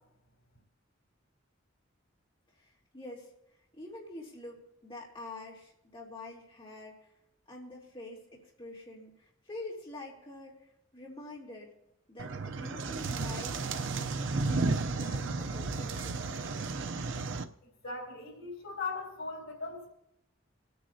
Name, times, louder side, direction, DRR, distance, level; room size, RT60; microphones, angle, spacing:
voice 1, 2.6-3.3 3.7-7.1 7.5-10.5 10.9-11.7 12.1-16.3, left 2 dB, 25° left, -4 dB, 3.3 m, -46 dB
sound 1, 12.2-17.4, right 3 dB, 70° right, 0.6 m, -33 dB
voice 2, 17.8-19.9, left 4 dB, 85° left, 1 dB, 3.5 m, -39 dB
26.5 x 9.3 x 2.8 m, 0.81 s
head